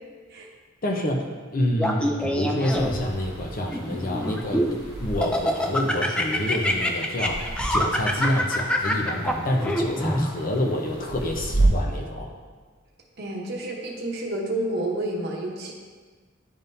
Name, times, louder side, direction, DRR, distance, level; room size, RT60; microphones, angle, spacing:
voice 1, 0.8-4.6 5.0-12.3, left 1 dB, 40° left, 1 dB, 0.7 m, -27 dB
Laughter, 1.8-3.1 3.7-4.8 5.2-10.2, equal, 5° left, 0.3 m, -25 dB
sound 1, 2.7-11.7, right 2 dB, 80° left, 1.9 m, -33 dB
voice 2, 13.2-15.7, right 1 dB, 50° right, -1 dB, 1.0 m, -29 dB
10.5 x 3.6 x 2.7 m, 1.4 s
head